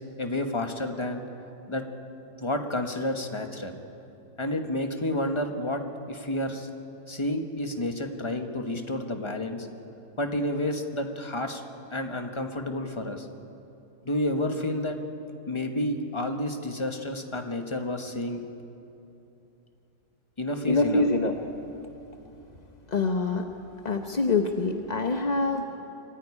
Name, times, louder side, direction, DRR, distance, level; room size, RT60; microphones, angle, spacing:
voice 1, 0.2-1.2 1.7-1.8 2.4-3.8 4.4-6.7 7.1-9.7 10.2-11.6 11.9-13.3 14.0-15.0 15.5-18.4 20.4-21.0, left 1 dB, 15° left, 5 dB, 1.2 m, -30 dB
voice 2, 20.7-21.3 22.9-23.5 23.8-25.6, left 3 dB, 40° left, 4 dB, 0.6 m, -25 dB
24.5 x 14.0 x 9.9 m, 2.8 s
omnidirectional pair, 2.1 m